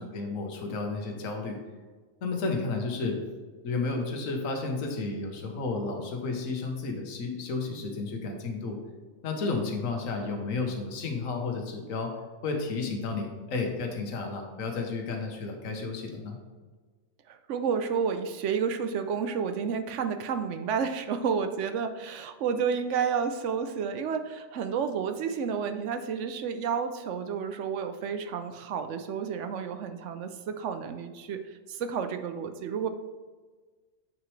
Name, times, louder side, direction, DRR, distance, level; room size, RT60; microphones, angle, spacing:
voice 1, 0.0-1.6 2.2-3.2 3.6-8.8 9.2-12.1 12.4-16.4, left 3 dB, 70° left, 3 dB, 1.4 m, -32 dB
voice 2, 17.3-32.9, right 6 dB, 70° right, 9 dB, 0.8 m, -31 dB
8.2 x 6.1 x 3.2 m, 1.4 s
omnidirectional pair, 1.4 m